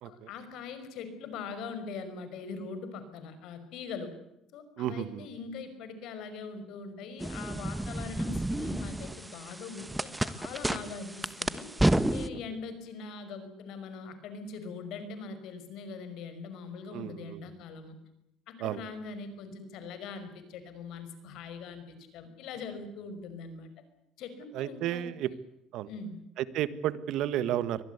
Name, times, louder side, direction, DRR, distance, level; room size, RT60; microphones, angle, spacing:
voice 1, 0.0-4.1 4.5-11.7 12.1-18.0 18.5-23.7 24.2-25.1 25.9-26.2, left 4 dB, 70° left, 10 dB, 5.4 m, -42 dB
voice 2, 4.8-5.3 12.3-12.4 16.9-17.4 18.6-18.8 24.5-25.3 25.7-25.9 26.4-27.8, right 11 dB, 70° right, 15 dB, 1.5 m, -32 dB
sound 1, 7.2-12.3, right 1 dB, 5° right, 1.3 m, -31 dB
24.0 x 19.5 x 8.2 m, 0.81 s
cardioid pair, 125°, 0 cm